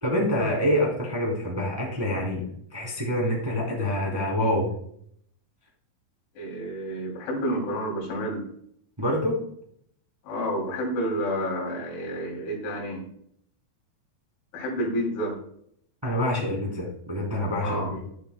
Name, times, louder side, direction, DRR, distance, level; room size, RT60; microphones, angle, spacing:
voice 1, 0.0-2.4 2.7-4.7 9.0-9.4 16.0-18.0, left 1 dB, 5° right, -3 dB, 2.3 m, -26 dB
voice 2, 6.4-8.5 10.2-13.1 14.5-15.4 17.6-18.0, equal, 85° left, -1 dB, 5.4 m, -29 dB
11.0 x 10.0 x 2.3 m, 0.67 s
omnidirectional pair, 5.4 m